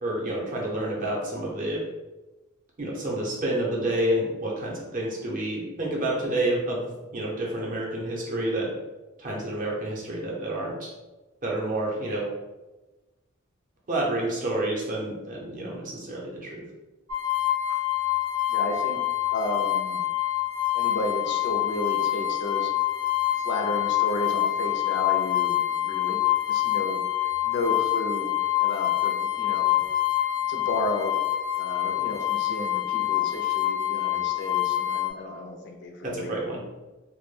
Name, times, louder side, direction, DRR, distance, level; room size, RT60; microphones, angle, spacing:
voice 1, 0.0-1.8 2.8-8.7 9.2-10.9 11.4-12.2 13.9-16.6 36.0-36.6, right 1 dB, 40° right, -3 dB, 0.6 m, -29 dB
sound 1, 17.1-35.1, left 14 dB, 85° right, 0.6 m, -26 dB
voice 2, 18.5-19.0 19.3-20.0 20.7-22.7 23.4-26.2 26.5-27.0 27.4-28.3 28.6-29.8 30.5-31.2 31.6-36.4, left 2 dB, 55° left, 3 dB, 0.4 m, -32 dB
2.2 x 2.1 x 3.1 m, 1.1 s
head